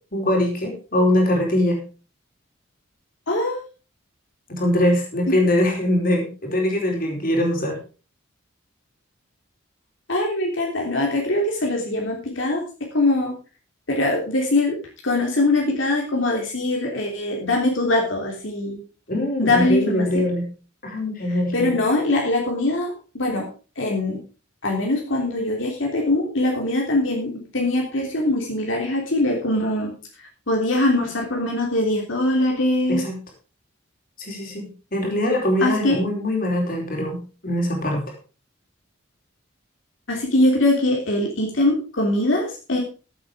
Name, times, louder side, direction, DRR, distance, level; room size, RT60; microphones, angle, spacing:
voice 1, 0.1-1.8 4.5-7.8 19.1-20.5 20.8-21.8 32.9-33.1 34.2-37.2 37.4-38.0, left 1 dB, 45° left, 1 dB, 4.6 m, -22 dB
voice 2, 3.3-3.6 5.3-5.4 10.1-12.6 12.9-13.3 13.9-14.8 15.0-18.8 19.4-20.1 21.5-23.4 23.8-24.2 24.6-29.9 30.5-33.0 35.6-36.0 40.1-42.8, left 2 dB, 70° left, 0 dB, 3.2 m, -22 dB
14.0 x 8.5 x 4.9 m, 0.35 s
head